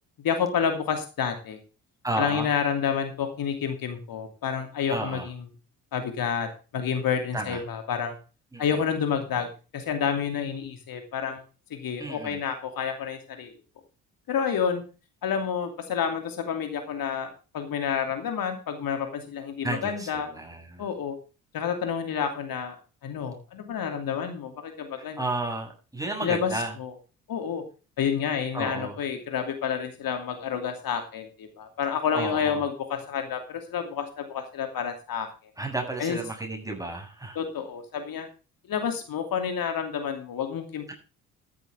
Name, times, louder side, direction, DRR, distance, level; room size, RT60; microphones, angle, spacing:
voice 1, 0.2-1.6 2.2-5.4 5.9-8.2 8.6-11.4 11.7-13.5 14.3-14.8 15.2-20.3 20.8-21.2 21.5-22.8 23.0-25.2 26.2-26.9 27.3-27.6 28.0-35.3 36.0-36.2 37.3-38.3 38.7-40.9, left 7 dB, 55° left, 6 dB, 2.8 m, -29 dB
voice 2, 2.0-2.5 4.9-5.3 7.3-7.6 8.5-8.6 12.0-12.4 19.6-20.9 25.2-26.7 28.5-29.0 32.1-32.6 35.6-37.4, right 2 dB, 10° right, 1 dB, 8.0 m, -32 dB
14.0 x 12.0 x 3.5 m, 0.34 s
hypercardioid pair, 50°, 41 cm